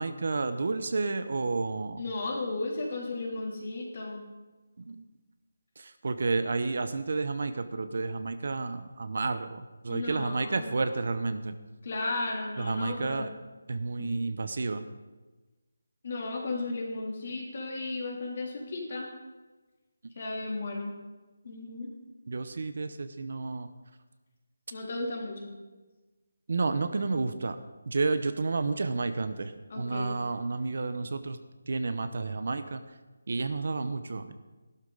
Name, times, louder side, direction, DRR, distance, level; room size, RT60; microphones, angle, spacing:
voice 1, 0.0-2.0 4.9-5.0 6.0-11.5 12.6-13.3 13.7-14.8 22.3-23.7 26.5-27.6 27.9-29.5 29.8-31.4 31.7-32.8 33.3-34.3, right 3 dB, 50° right, 10 dB, 0.8 m, -30 dB
voice 2, 2.0-4.2 9.9-10.8 11.8-13.3 14.0-14.2 16.0-19.1 20.1-20.9 21.4-21.9 24.7-25.5 29.7-30.2, left 2 dB, 40° left, -1 dB, 2.9 m, -35 dB
15.0 x 12.0 x 4.0 m, 1.2 s
figure-of-eight pair, 175°, 0 cm